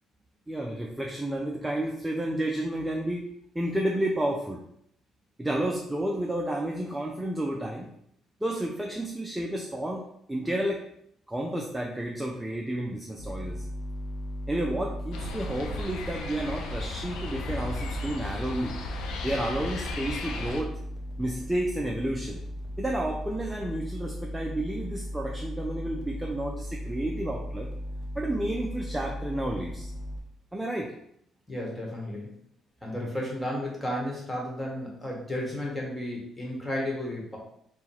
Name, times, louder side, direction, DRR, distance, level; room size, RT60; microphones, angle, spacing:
voice 1, 0.5-3.3 3.5-4.6 5.4-7.9 8.4-10.8 11.3-13.7 14.5-18.8 19.2-20.7 21.2-22.4 22.8-27.7 28.2-29.9 30.5-30.9, right 1 dB, 10° right, 0 dB, 0.4 m, -31 dB
sound 1, 13.2-16.9 18.4-30.2, equal, 55° left, 0.9 m, -37 dB
sound 2, 15.1-20.6, left 2 dB, 85° left, 0.5 m, -35 dB
voice 2, 31.5-32.3 32.8-37.4, left 1 dB, 10° left, -3 dB, 1.3 m, -33 dB
3.6 x 2.2 x 4.4 m, 0.73 s
cardioid pair, 110°, 0 cm